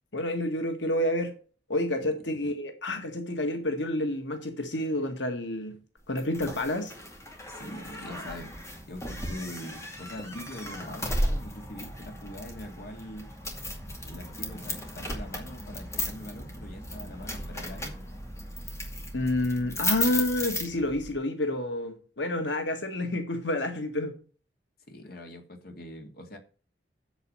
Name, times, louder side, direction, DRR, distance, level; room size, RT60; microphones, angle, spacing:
voice 1, 0.1-1.3 1.7-5.7 6.1-6.9 19.1-24.1, left 1 dB, 90° left, 1.7 m, -29 dB
sound 1, 6.2-21.1, left 1 dB, 15° left, 2.3 m, -35 dB
voice 2, 7.5-8.5 8.9-13.3 14.0-18.0 24.9-26.4, left 1 dB, 55° left, 2.2 m, -42 dB
8.2 x 7.4 x 5.5 m
head